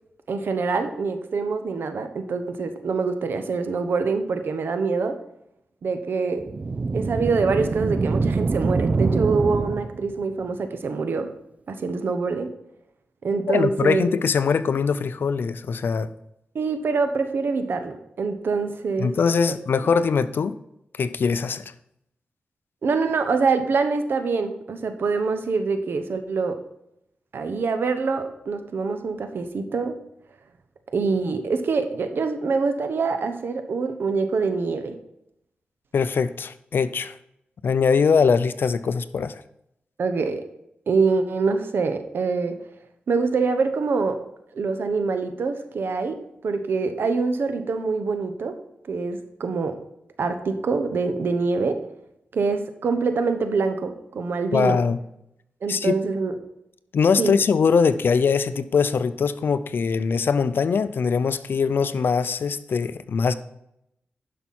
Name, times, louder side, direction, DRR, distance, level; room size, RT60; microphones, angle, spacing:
voice 1, 0.3-5.2 5.8-6.4 6.9-11.3 11.7-12.5 13.2-14.1 16.5-19.2 19.5-19.6 22.8-26.6 27.3-30.0 30.9-35.0 40.0-40.4 40.9-42.6 43.1-44.2 44.5-46.2 46.4-48.6 48.9-49.8 50.2-51.8 52.3-54.8 55.6-56.4 57.2-57.4, right 4 dB, 80° right, 8 dB, 1.1 m, -25 dB
sound 1, 6.4-10.2, right 4 dB, 40° right, 0.3 m, -24 dB
voice 2, 13.5-16.1 19.0-20.6 21.0-21.6 35.9-37.2 37.6-39.4 54.5-55.0 55.7-55.9 56.9-63.3, left 5 dB, 75° left, 13 dB, 0.6 m, -22 dB
11.0 x 5.8 x 4.3 m, 0.80 s
wide cardioid pair, 85°, 4 cm